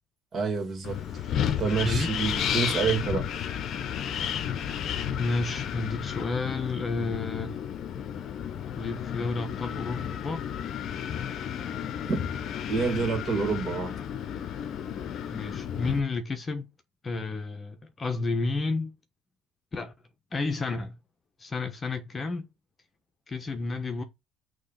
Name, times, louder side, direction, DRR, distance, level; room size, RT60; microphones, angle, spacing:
voice 1, 0.3-1.0 1.6-3.3 12.1-12.2 12.7-13.9, right 5 dB, 35° right, 2.5 m, -27 dB
Wind, 0.8-16.0, left 9 dB, 50° left, 0.8 m, -32 dB
voice 2, 5.2-7.6 8.8-10.5 15.3-16.7 17.0-18.9 19.7-19.9 20.3-21.0 21.4-22.5 23.3-24.0, left 3 dB, 25° left, 1.0 m, -31 dB
6.5 x 3.0 x 5.7 m
supercardioid pair, 110°, 0 cm